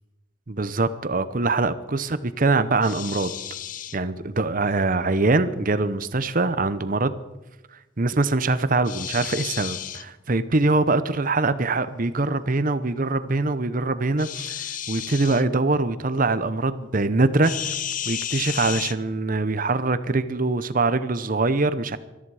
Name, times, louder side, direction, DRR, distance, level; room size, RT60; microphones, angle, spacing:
voice 1, 0.5-2.1 2.4-3.3 3.9-7.2 8.0-17.5 18.0-22.0, right 3 dB, 40° right, 13 dB, 0.7 m, -23 dB
sound 1, 2.8-4.0 8.8-10.1 14.2-15.4 17.4-19.0, left 10 dB, 40° left, 0.5 m, -32 dB
20.0 x 14.0 x 4.9 m, 1.1 s
head